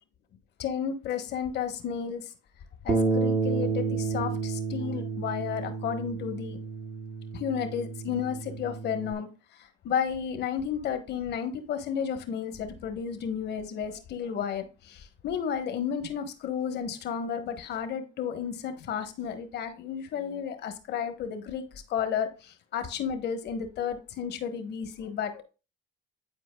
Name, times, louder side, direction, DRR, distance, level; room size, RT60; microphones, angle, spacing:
voice 1, 0.6-2.3 2.8-6.6 7.3-25.4, left 8 dB, 65° left, 1.2 m, -32 dB
Bass guitar, 2.9-9.1, right 4 dB, 40° right, 1.0 m, -30 dB
10.5 x 4.6 x 2.3 m
supercardioid pair, 90°, 19 cm